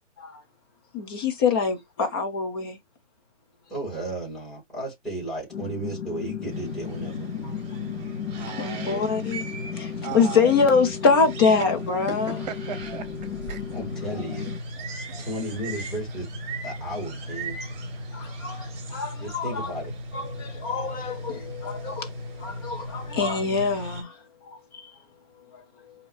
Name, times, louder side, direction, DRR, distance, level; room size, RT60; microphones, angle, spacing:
voice 1, 0.9-2.8 7.4-7.5 8.6-9.4 9.7-12.3 18.1-19.7 20.1-24.9 25.5-25.9, left 5 dB, 20° left, 0.6 m, -25 dB
voice 2, 3.7-7.3 13.7-14.5 15.2-16.3 16.6-17.6 19.2-19.9, right 1 dB, ahead, 2.5 m, -34 dB
sound 1, 5.5-14.6, left 8 dB, 70° left, 1.1 m, -35 dB
sound 2, 6.5-24.0, right 1 dB, 20° right, 2.6 m, -37 dB
voice 3, 8.3-9.1 10.0-10.5 11.6-11.7 12.1-12.2 12.4-13.6 15.1-15.3, right 9 dB, 35° right, 1.1 m, -37 dB
5.1 x 2.9 x 3.3 m
figure-of-eight pair, 140°, 37 cm